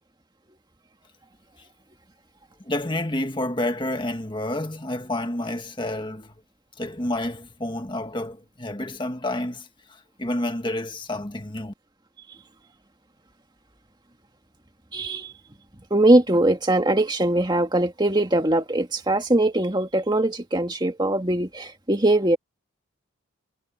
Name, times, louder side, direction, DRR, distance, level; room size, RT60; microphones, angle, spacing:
voice 1, 2.6-6.3 6.8-11.7, left 1 dB, 20° left, 1.7 m, -29 dB
voice 2, 14.9-15.3 15.9-22.4, right 1 dB, 20° right, 2.1 m, -21 dB
head